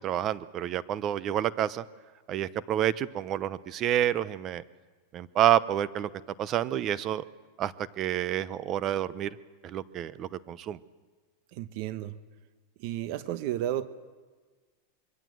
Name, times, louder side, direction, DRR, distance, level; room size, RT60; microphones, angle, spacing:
voice 1, 0.0-1.8 2.3-4.6 5.1-6.1 6.4-7.2 7.6-9.4 9.6-10.8, right 11 dB, 35° right, 16 dB, 0.8 m, -28 dB
voice 2, 11.5-12.2 12.8-13.9, right 12 dB, 55° right, 12 dB, 1.1 m, -32 dB
25.0 x 22.5 x 7.8 m, 1.4 s
supercardioid pair, 140°, 0 cm